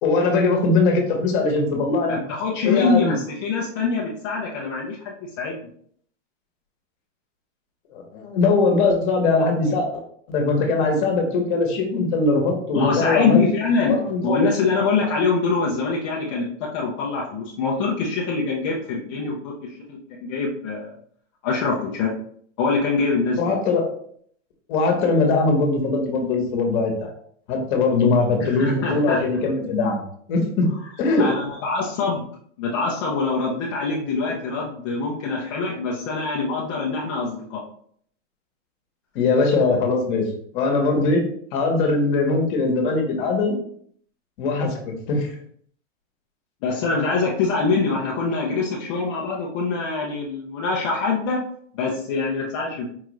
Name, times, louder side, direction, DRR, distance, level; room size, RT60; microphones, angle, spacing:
voice 1, 0.0-2.2 2.6-3.2 7.9-10.0 10.3-13.4 13.9-14.5 23.4-23.9 24.7-27.1 27.5-30.0 30.3-30.7 31.0-31.3 39.1-40.2 40.5-41.2 41.5-43.6 44.4-45.3, left 3 dB, 40° left, 2 dB, 1.1 m, -21 dB
voice 2, 2.1-5.6 12.7-14.0 14.2-19.4 19.7-20.9 21.4-22.1 22.6-23.6 28.4-29.2 31.2-32.2 32.6-37.6 46.6-51.4 51.7-52.8, left 4 dB, 25° left, -4 dB, 0.4 m, -24 dB
4.6 x 2.5 x 3.0 m, 0.62 s
supercardioid pair, 155°, 38 cm